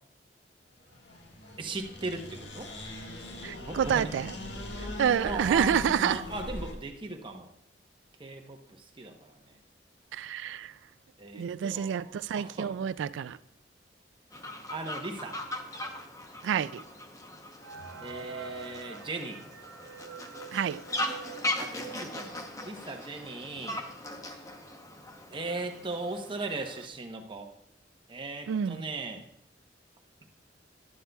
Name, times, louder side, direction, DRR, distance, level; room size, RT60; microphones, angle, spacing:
sound 1, 0.8-6.7, left 1 dB, 75° left, 1.4 m, -40 dB
voice 1, 1.6-2.7 3.6-4.1 5.2-7.5 8.2-8.6 9.0-9.3 11.2-12.7 14.7-15.4 18.0-19.4 21.6-23.8 25.3-27.5 28.1-29.3, right 2 dB, 25° right, 0.8 m, -38 dB
voice 2, 3.4-4.3 5.0-6.2 10.1-10.7 11.3-13.4 16.4-16.8 20.5-20.8 28.5-28.8, right 8 dB, 85° right, 0.3 m, -28 dB
Fowl, 14.3-26.9, left 1 dB, 20° left, 0.8 m, -39 dB
sound 2, 17.6-23.0 23.5-23.6 23.8-23.9 24.7-24.8 25.1-25.5, right 5 dB, 65° right, 0.7 m, -46 dB
11.5 x 11.0 x 2.3 m
head